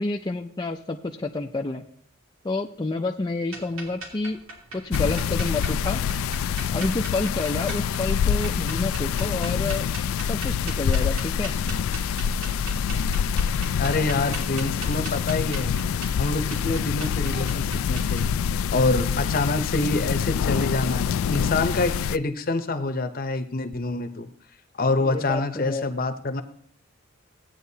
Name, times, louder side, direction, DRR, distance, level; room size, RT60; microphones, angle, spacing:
voice 1, 0.0-1.8 2.4-4.4 4.7-6.0 6.7-9.9 10.3-11.5 25.0-25.9, left 3 dB, 20° left, 1 dB, 0.4 m, -29 dB
sound 1, 3.5-18.2, right 2 dB, 90° right, 3.0 m, -40 dB
sound 2, 4.9-22.2, left 7 dB, 85° left, 0.3 m, -26 dB
voice 2, 13.8-15.7 16.2-18.3 18.7-24.3 24.7-26.4, left 2 dB, 45° left, 9 dB, 0.8 m, -26 dB
16.0 x 9.0 x 2.8 m, 0.62 s
head